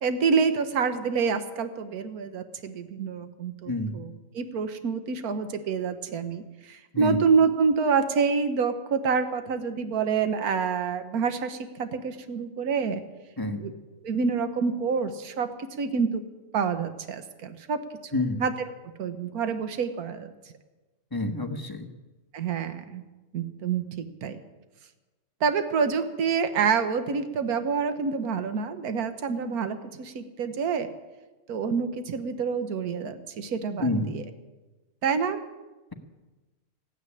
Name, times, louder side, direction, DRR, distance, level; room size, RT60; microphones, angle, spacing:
voice 1, 0.0-13.0 13.5-13.7 14.0-15.5 15.8-16.2 16.5-17.8 18.4-18.7 19.0-20.3 22.3-23.0 23.3-24.4 25.4-30.9 31.5-34.2 35.0-35.4, right 5 dB, 85° right, 9 dB, 1.5 m, -27 dB
voice 2, 3.7-4.0 6.9-7.2 13.4-13.6 18.1-18.4 21.1-21.9 33.8-34.1, left 2 dB, 15° left, 4 dB, 1.1 m, -28 dB
15.0 x 9.5 x 9.8 m, 1.2 s
omnidirectional pair, 1.5 m